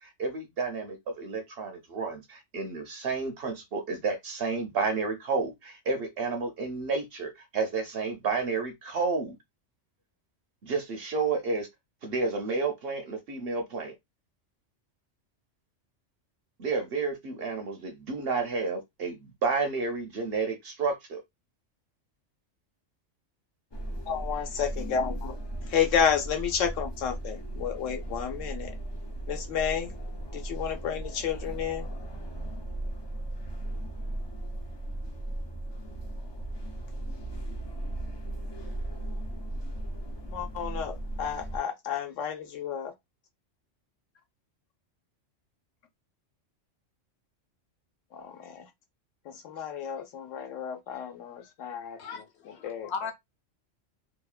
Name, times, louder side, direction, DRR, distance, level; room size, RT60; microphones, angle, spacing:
voice 1, 0.0-9.4 10.6-11.7 12.0-13.9 16.6-21.2, right 4 dB, 60° right, 0.8 m, -31 dB
sound 1, 23.7-41.6, right 1 dB, 45° left, 0.3 m, -37 dB
voice 2, 24.1-25.4 25.7-28.7 29.3-29.9 30.3-31.9 40.3-42.9 48.1-48.6 49.3-52.0 52.6-52.9, left 8 dB, 90° left, 1.1 m, -31 dB
voice 3, 52.0-53.1, left 5 dB, 65° left, 0.9 m, -37 dB
2.9 x 2.1 x 2.4 m
omnidirectional pair, 1.3 m